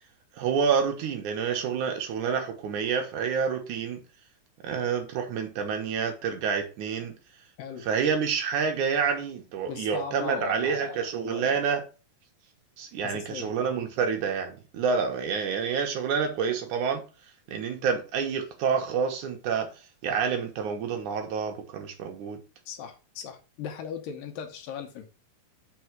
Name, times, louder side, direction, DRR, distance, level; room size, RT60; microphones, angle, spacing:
voice 1, 0.4-4.0 4.6-7.2 7.9-11.8 12.8-17.0 17.5-19.7 20.0-22.4, right 6 dB, 70° right, 2.3 m, -28 dB
voice 2, 9.7-11.7 13.0-13.5 22.7-25.1, left 7 dB, 85° left, 2.7 m, -38 dB
6.1 x 3.8 x 6.0 m
omnidirectional pair, 4.0 m